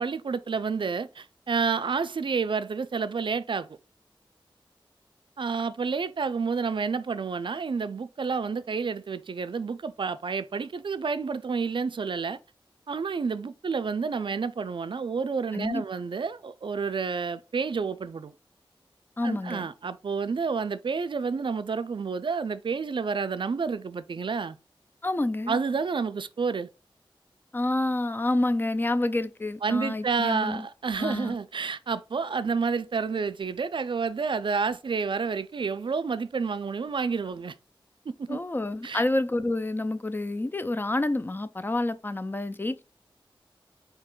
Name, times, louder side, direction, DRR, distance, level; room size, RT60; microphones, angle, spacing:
voice 1, 0.0-3.8 5.4-12.4 12.9-18.3 19.2-24.6 25.5-26.7 29.6-37.5 38.1-38.4 38.8-39.0, right 5 dB, 65° right, 0.4 m, -29 dB
voice 2, 19.2-19.7 25.0-25.6 27.5-30.7 31.0-31.3 38.3-42.8, left 2 dB, 25° left, 0.4 m, -28 dB
4.2 x 2.8 x 3.7 m
wide cardioid pair, 60°, 9 cm